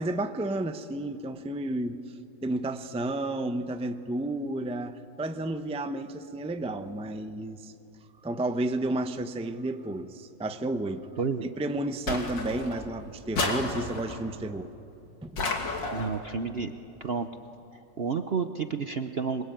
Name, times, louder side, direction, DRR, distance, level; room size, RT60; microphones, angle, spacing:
voice 1, 0.0-2.0 2.4-7.7 8.2-11.1 11.6-14.7 15.2-15.3, right 1 dB, 5° right, 9 dB, 0.5 m, -31 dB
sound 1, 12.1-12.9 13.3-14.2 15.4-16.2, left 2 dB, 90° left, 3.4 m, -31 dB
voice 2, 15.9-16.7 17.0-17.3 17.7-19.4, right 5 dB, 50° right, 8 dB, 0.7 m, -30 dB
26.5 x 22.5 x 9.1 m, 2.9 s
omnidirectional pair, 1.9 m